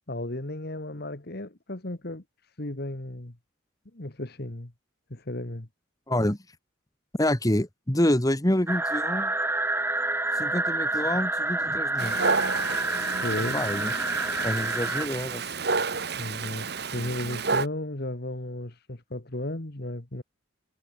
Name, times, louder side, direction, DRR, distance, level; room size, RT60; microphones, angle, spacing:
voice 1, 0.1-2.2 2.6-3.4 3.9-4.7 5.1-5.7 13.2-13.6 16.1-16.7 16.9-20.2, left 1 dB, 50° left, 1.8 m, -34 dB
voice 2, 6.1-6.4 7.2-9.3 10.3-12.2 13.5-13.9 14.4-15.4, left 1 dB, 15° left, 1.5 m, -27 dB
sound 1, 8.7-15.1, right 2 dB, 10° right, 1.5 m, -28 dB
Dog, 12.0-17.7, right 4 dB, 55° right, 1.8 m, -30 dB
head